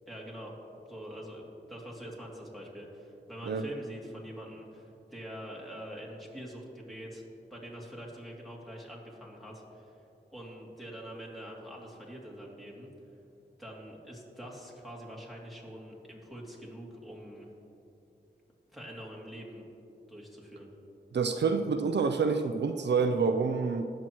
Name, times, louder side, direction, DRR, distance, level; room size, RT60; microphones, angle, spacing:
voice 1, 0.1-0.5 0.9-7.2 7.5-10.0 10.3-12.9 13.6-17.5 18.7-19.6 20.1-20.7, equal, ahead, -5 dB, 2.7 m, -45 dB
voice 2, 21.1-23.8, right 5 dB, 75° right, 6 dB, 0.5 m, -27 dB
19.0 x 7.5 x 3.1 m, 2.8 s
wide cardioid pair, 60°, 18 cm